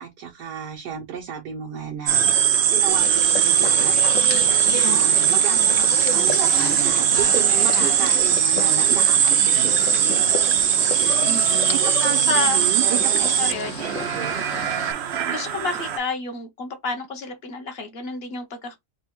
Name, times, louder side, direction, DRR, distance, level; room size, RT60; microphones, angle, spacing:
voice 1, 0.0-2.2 2.7-3.9 4.7-10.4 10.8-13.1 14.1-14.4, right 8 dB, 90° right, 1.4 m, -33 dB
sound 1, 2.1-16.0, right 9 dB, 65° right, 0.7 m, -20 dB
sound 2, 2.9-14.9, left 8 dB, 65° left, 0.8 m, -33 dB
voice 2, 4.8-5.4 7.7-8.1 10.9-11.8 12.1-12.6 13.2-13.7 15.3-18.8, left 4 dB, 40° left, 1.2 m, -31 dB
3.7 x 2.2 x 4.3 m
omnidirectional pair, 1.7 m